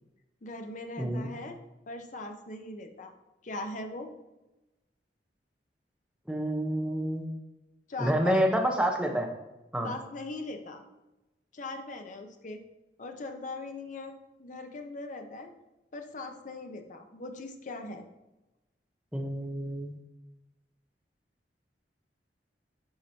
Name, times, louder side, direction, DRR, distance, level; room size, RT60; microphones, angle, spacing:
voice 1, 0.4-1.6 1.9-3.1 3.4-4.1 7.9-8.5 9.8-10.8 11.5-12.6 13.0-15.5 15.9-18.0, left 2 dB, 45° left, 5 dB, 0.7 m, -40 dB
voice 2, 1.0-1.3 6.3-7.3 8.0-9.3 9.7-9.9 19.1-20.0, equal, 5° right, 2 dB, 0.8 m, -28 dB
9.6 x 4.8 x 2.8 m, 1.0 s
head